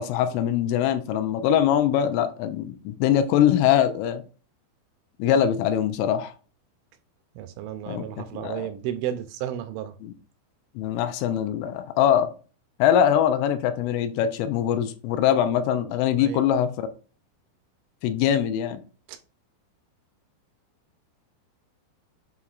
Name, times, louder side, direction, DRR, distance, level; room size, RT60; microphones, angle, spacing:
voice 1, 0.0-4.2 5.2-6.3 7.9-8.0 8.3-8.7 10.0-10.1 10.8-12.3 12.8-16.9 18.0-18.8, left 10 dB, 80° left, 3.2 m, -22 dB
voice 2, 7.4-10.0 16.2-16.4 19.1-19.2, right 11 dB, 80° right, 2.9 m, -33 dB
7.8 x 5.8 x 2.5 m
omnidirectional pair, 5.9 m